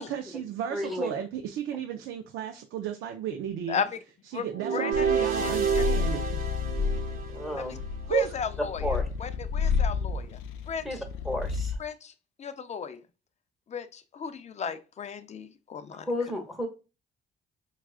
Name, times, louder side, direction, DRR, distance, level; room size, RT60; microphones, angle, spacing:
voice 1, 0.0-3.8 4.3-6.2 8.1-8.3, right 9 dB, 85° right, 0.5 m, -33 dB
voice 2, 0.7-1.1 7.3-7.7 8.8-9.0 10.8-11.0 11.2-11.7 16.0-16.7, left 1 dB, ahead, 0.9 m, -31 dB
voice 3, 3.7-4.0 4.3-4.5 4.7-5.5 7.5-7.8 8.1-10.4 10.7-11.0 11.8-12.1 12.4-13.0 13.7-16.1, left 7 dB, 35° left, 0.5 m, -35 dB
sound 1, 4.5-7.8, right 7 dB, 45° right, 0.9 m, -29 dB
Purr, 4.9-11.9, left 5 dB, 90° left, 0.5 m, -31 dB
4.6 x 2.4 x 2.3 m
cardioid pair, 90°, 20 cm